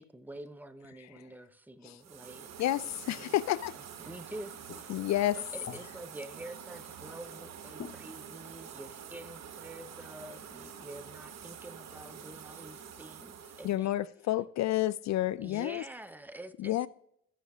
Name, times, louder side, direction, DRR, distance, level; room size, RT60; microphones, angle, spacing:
voice 1, 0.0-2.5 3.1-3.3 3.7-5.0 5.4-14.1 15.4-16.9, right 1 dB, 5° right, 0.7 m, -47 dB
sound 1, 2.0-13.8, right 8 dB, 60° right, 1.2 m, -47 dB
voice 2, 2.6-3.7 4.9-5.4 13.6-15.8 16.6-16.9, left 14 dB, 65° left, 0.4 m, -30 dB
sound 2, 4.7-7.4 7.8-9.4 10.4-10.5, left 7 dB, 40° left, 0.9 m, -51 dB
16.0 x 6.5 x 2.4 m
cardioid pair, 90°, 30 cm